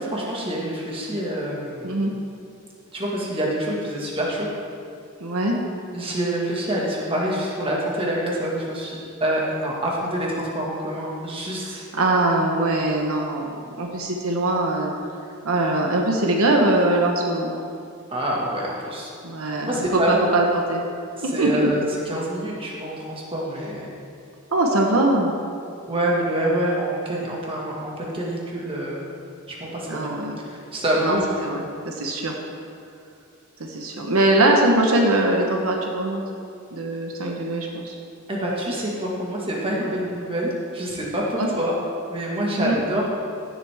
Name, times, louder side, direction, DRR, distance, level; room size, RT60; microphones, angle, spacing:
voice 1, 0.1-2.0 2.9-4.5 5.9-11.8 18.1-19.1 19.4-20.4 21.2-23.9 25.9-29.0 29.5-30.1 30.5-31.5 38.3-41.8 42.1-43.1, right 1 dB, 25° right, -4 dB, 1.7 m, -26 dB
voice 2, 5.2-5.6 11.9-14.9 15.4-17.5 19.2-20.8 21.2-21.7 24.5-25.3 29.9-30.4 31.0-32.3 33.6-36.2 36.7-38.0 39.8-40.0 41.4-41.5 42.6-42.8, right 2 dB, 75° right, 1 dB, 1.1 m, -22 dB
16.0 x 7.8 x 3.5 m, 2.4 s
head